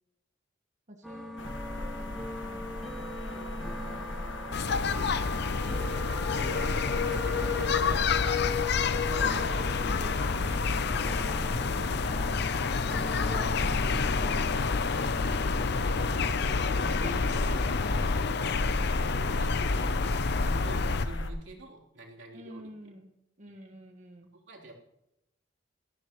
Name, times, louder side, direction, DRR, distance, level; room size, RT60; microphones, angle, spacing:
voice 1, 0.9-5.2 7.4-8.0 8.9-12.4 12.9-14.7 22.3-23.1 23.4-24.3, right 1 dB, 40° right, 2 dB, 1.5 m, -48 dB
sound 1, 1.0-18.5, equal, ahead, 2.0 m, -42 dB
sound 2, 1.4-21.3, left 2 dB, 80° left, 1.3 m, -34 dB
sound 3, 4.5-21.1, left 5 dB, 60° left, 0.6 m, -29 dB
voice 2, 6.0-8.1 13.2-13.5 16.2-18.5 19.0-22.9 23.6-23.7 24.3-24.7, right 1 dB, 90° right, -2 dB, 3.3 m, -46 dB
19.5 x 14.0 x 3.1 m, 0.87 s
head